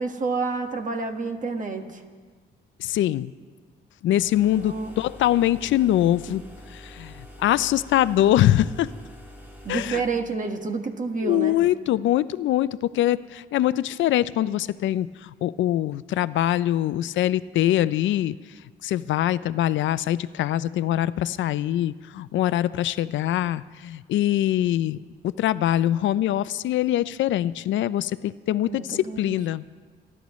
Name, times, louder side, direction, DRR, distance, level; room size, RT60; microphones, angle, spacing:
voice 1, 0.0-2.0 4.6-4.9 6.3-6.4 9.6-11.6 28.6-29.4, right 4 dB, 40° right, 5 dB, 1.6 m, -29 dB
voice 2, 2.8-3.3 4.0-6.4 6.7-8.9 9.7-10.0 11.2-18.4 18.8-29.6, left 13 dB, 70° left, 16 dB, 0.5 m, -23 dB
sound 1, 4.2-10.2, equal, 10° right, 2.6 m, -45 dB
29.5 x 12.0 x 3.1 m, 1.5 s
cardioid pair, 90°, 20 cm